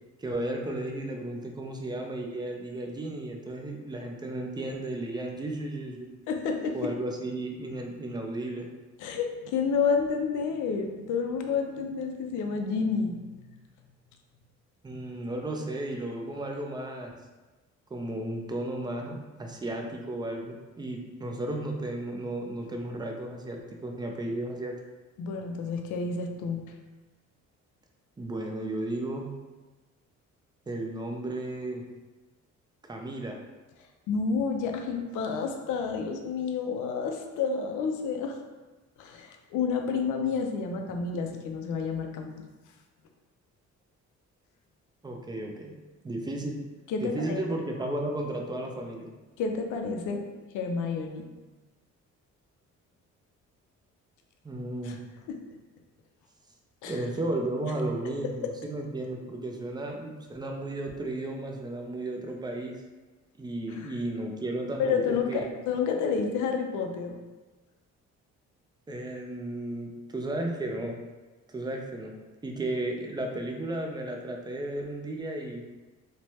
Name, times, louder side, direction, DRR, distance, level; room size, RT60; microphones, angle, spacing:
voice 1, 0.2-6.1 6.7-8.7 14.8-17.2 17.9-24.7 28.2-29.3 30.7-31.8 32.9-33.4 45.0-45.7 46.0-46.6 47.0-49.1 54.4-55.0 56.9-62.8 63.4-65.5 68.9-71.0 71.5-72.1 72.4-75.6, right 1 dB, 15° right, 1 dB, 0.4 m, -34 dB
voice 2, 6.3-6.9 9.0-13.2 25.2-26.6 34.1-38.4 39.0-42.4 46.9-47.4 49.4-50.3 50.5-51.3 54.8-55.0 55.3-55.4 56.8-57.0 58.1-58.2 63.7-63.9 64.8-67.2, left 5 dB, 85° left, 4 dB, 0.5 m, -30 dB
3.1 x 2.1 x 2.8 m, 1.2 s
cardioid pair, 90°, 30 cm